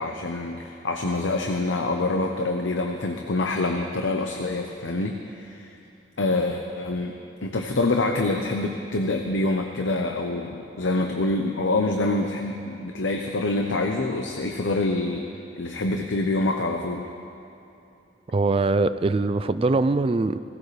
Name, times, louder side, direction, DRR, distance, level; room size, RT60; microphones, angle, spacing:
voice 1, 0.0-5.7 6.2-7.1 7.4-15.2 15.6-17.1, left 2 dB, 90° left, 3 dB, 0.8 m, -26 dB
voice 2, 18.3-20.4, right 3 dB, 30° right, 12 dB, 0.3 m, -22 dB
17.5 x 17.0 x 3.3 m, 2.8 s
head